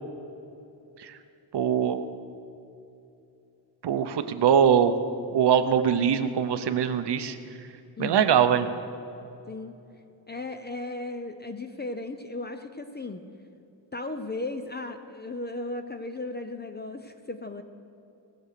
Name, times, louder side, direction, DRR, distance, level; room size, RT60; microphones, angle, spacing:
voice 1, 1.5-2.1 3.8-4.9 5.3-7.4 8.0-8.7, right 8 dB, 60° right, 10 dB, 0.7 m, -22 dB
voice 2, 8.0-8.3 9.5-9.7 10.3-13.2 13.9-17.6, left 2 dB, 25° left, 7 dB, 0.4 m, -36 dB
18.0 x 6.3 x 6.6 m, 2.8 s
wide cardioid pair, 155°, 47 cm